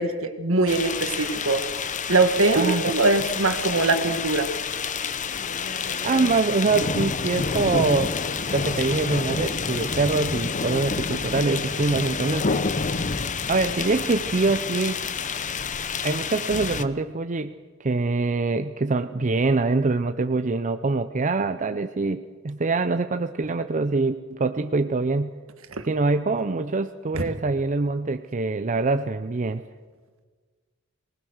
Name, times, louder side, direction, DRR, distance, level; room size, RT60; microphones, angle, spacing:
voice 1, 0.0-1.6 2.1-4.5 25.8-25.9 27.1-27.2, right 3 dB, 65° right, 8 dB, 1.9 m, -22 dB
sound 1, 0.7-16.8, left 5 dB, 35° left, 0.8 m, -28 dB
voice 2, 6.0-8.1 8.5-12.7 13.5-15.0 16.0-17.5 17.8-25.3 25.8-29.6, right 3 dB, 35° right, 9 dB, 0.6 m, -24 dB
24.0 x 19.5 x 6.5 m, 1.5 s
head